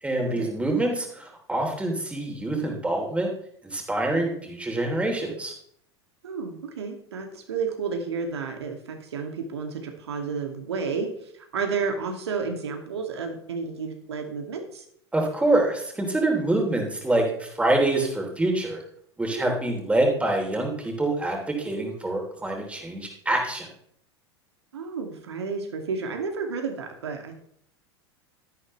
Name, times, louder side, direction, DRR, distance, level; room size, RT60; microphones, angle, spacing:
voice 1, 0.0-3.3 3.6-5.5 15.1-18.8 19.2-23.7, right 2 dB, 10° right, 1 dB, 3.3 m, -25 dB
voice 2, 6.2-14.8 19.4-19.5 24.7-27.4, right 5 dB, 70° right, 4 dB, 2.3 m, -31 dB
13.0 x 11.5 x 3.2 m, 0.67 s
figure-of-eight pair, 85°, 14 cm